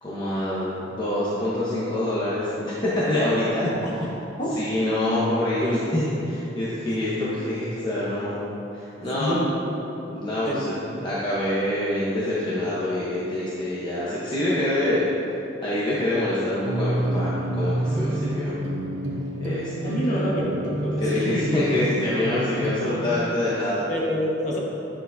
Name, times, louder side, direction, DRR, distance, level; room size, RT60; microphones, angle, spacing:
voice 1, 0.0-3.7 4.6-8.4 8.7-9.4 10.1-10.7 11.0-15.1 15.6-18.6 19.4-20.2 21.0-23.8, left 1 dB, 25° left, -9 dB, 1.0 m, -26 dB
voice 2, 9.2-9.5 10.4-10.6 10.9-11.0 19.8-21.4 23.9-24.6, equal, 40° left, -5 dB, 1.5 m, -27 dB
sound 1, 16.6-23.0, right 1 dB, 85° right, 0.8 m, -28 dB
10.0 x 6.5 x 2.7 m, 3.0 s
head